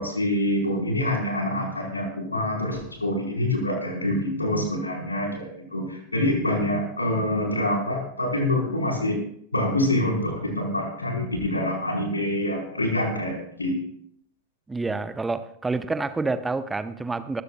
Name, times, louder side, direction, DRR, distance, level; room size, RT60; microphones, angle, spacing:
voice 1, 0.0-9.2 9.5-13.9, left 1 dB, 80° left, 0 dB, 4.6 m, -26 dB
voice 2, 14.7-17.4, right 3 dB, 10° right, 12 dB, 0.9 m, -28 dB
23.5 x 14.5 x 2.4 m, 0.69 s
figure-of-eight pair, 90°, 0 cm